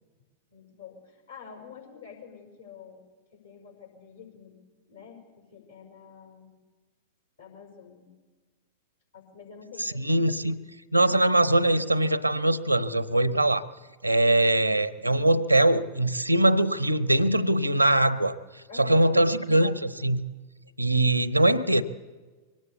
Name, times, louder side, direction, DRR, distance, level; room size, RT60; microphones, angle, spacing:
voice 1, 0.5-3.0 3.3-4.6 4.9-6.5 7.4-8.1 9.1-10.0 18.7-19.1, left 7 dB, 75° left, 3 dB, 5.6 m, -47 dB
voice 2, 9.8-10.6 10.9-13.7 14.0-20.2 20.8-21.8, right 1 dB, 90° right, 18 dB, 0.8 m, -22 dB
22.5 x 18.5 x 8.2 m, 1.3 s
figure-of-eight pair, 90°, 0 cm